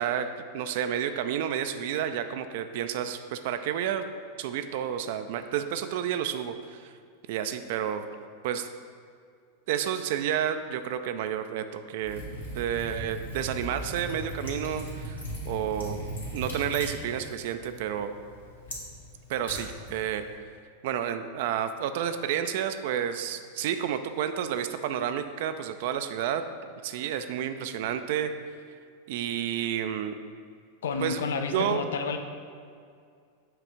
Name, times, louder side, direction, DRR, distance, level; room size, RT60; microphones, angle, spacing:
voice 1, 0.0-4.1 4.4-6.9 7.3-8.0 8.4-8.7 9.7-12.2 12.5-15.2 15.5-16.0 16.3-18.1 19.3-20.3 20.8-26.4 26.8-28.3 29.1-30.1 31.0-31.2 31.5-31.8, right 9 dB, 50° right, 9 dB, 0.3 m, -30 dB
Liquid, 12.0-20.3, equal, 75° left, 1.5 m, -38 dB
voice 2, 30.8-32.2, left 5 dB, 60° left, 7 dB, 0.5 m, -30 dB
7.7 x 3.3 x 5.0 m, 2.3 s
figure-of-eight pair, 90°, 0 cm